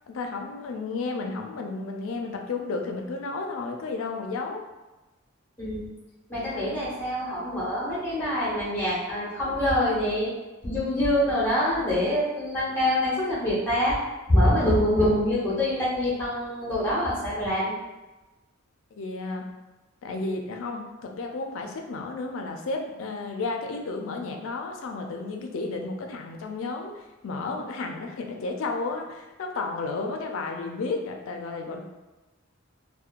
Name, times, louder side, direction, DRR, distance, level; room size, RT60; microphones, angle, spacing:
voice 1, 0.1-4.6 18.9-19.5 20.0-31.8, left 3 dB, 80° left, 3 dB, 0.4 m, -32 dB
voice 2, 6.3-10.3 10.6-14.0 14.3-17.7, left 1 dB, 10° left, -9 dB, 1.0 m, -25 dB
2.8 x 2.1 x 2.4 m, 1.1 s
head